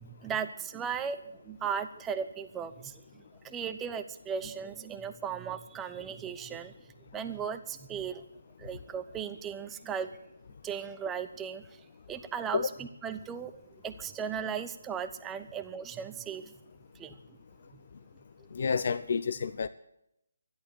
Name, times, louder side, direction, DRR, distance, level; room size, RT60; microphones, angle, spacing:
voice 1, 0.0-6.7 7.1-8.2 8.6-10.1 10.6-11.7 12.1-13.6 13.8-16.5 17.0-17.2, right 7 dB, 10° right, 9 dB, 0.9 m, -37 dB
voice 2, 18.5-19.7, left 5 dB, 55° left, 13 dB, 0.6 m, -29 dB
13.5 x 11.5 x 8.6 m, 0.78 s
figure-of-eight pair, 155°, 0 cm